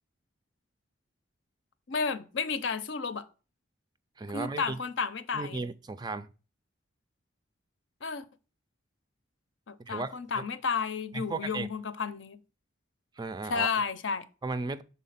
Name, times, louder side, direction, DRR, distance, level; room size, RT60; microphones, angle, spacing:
voice 1, 1.9-3.2 4.3-5.6 8.0-8.2 9.7-12.4 13.5-14.2, left 5 dB, 65° left, 0.6 m, -32 dB
voice 2, 4.2-4.8 5.3-6.3 9.8-10.4 11.1-11.7 13.2-13.7 14.4-14.8, right 3 dB, 20° right, 0.3 m, -35 dB
6.3 x 4.2 x 5.6 m
head